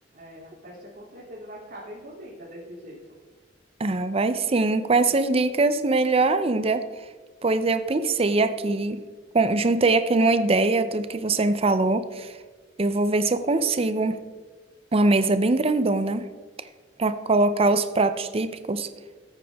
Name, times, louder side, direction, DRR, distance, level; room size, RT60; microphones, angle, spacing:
voice 1, 0.1-3.1, equal, 60° right, -9 dB, 2.8 m, -42 dB
voice 2, 3.8-6.8 7.4-9.0 9.3-12.3 12.8-14.2 14.9-16.3 17.0-18.9, right 3 dB, 35° right, 11 dB, 0.6 m, -22 dB
14.0 x 8.9 x 3.5 m, 1.4 s
head